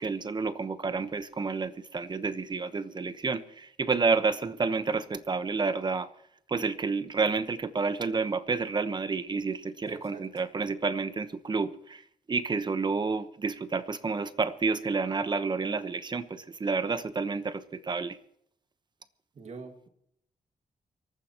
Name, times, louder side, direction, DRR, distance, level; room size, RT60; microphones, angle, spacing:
voice 1, 0.0-6.1 6.5-18.2, right 4 dB, 30° right, 12 dB, 1.0 m, -30 dB
voice 2, 9.8-10.4 19.3-19.9, right 4 dB, 55° right, 5 dB, 2.0 m, -44 dB
25.0 x 14.0 x 3.0 m, 0.70 s
wide cardioid pair, 135°, 14 cm